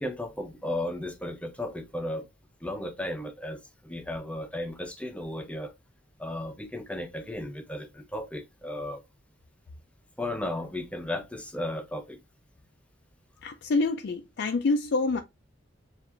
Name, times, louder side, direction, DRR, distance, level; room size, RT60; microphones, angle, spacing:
voice 1, 0.0-2.3 2.6-5.7 6.2-9.0 10.2-12.2, left 1 dB, 5° left, 0.6 m, -35 dB
voice 2, 13.4-15.2, left 3 dB, 55° left, 0.4 m, -26 dB
7.1 x 2.5 x 2.5 m
head